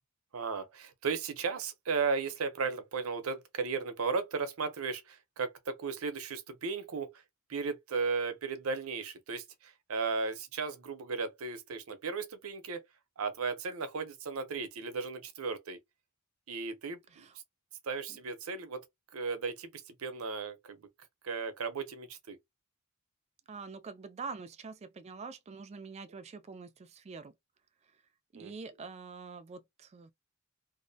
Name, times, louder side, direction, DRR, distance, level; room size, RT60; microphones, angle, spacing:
voice 1, 0.3-7.2 7.5-12.8 13.2-15.8 16.5-17.2 17.8-18.8 19.1-20.9 21.2-22.4 28.4-28.5, right 4 dB, 85° right, 0.6 m, -35 dB
voice 2, 23.5-27.3 28.3-30.1, right 4 dB, 30° right, 0.3 m, -45 dB
2.5 x 2.0 x 2.6 m
head